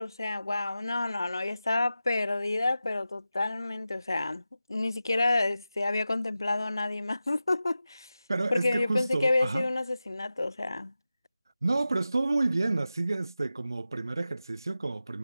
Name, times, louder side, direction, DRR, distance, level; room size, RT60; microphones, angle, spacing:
voice 1, 0.0-4.4 4.7-8.1 8.5-10.9, left 2 dB, 90° left, 0.5 m, -29 dB
voice 2, 8.3-9.7 11.6-15.2, right 3 dB, 75° right, 0.7 m, -29 dB
figure-of-eight pair, 165°, 2 cm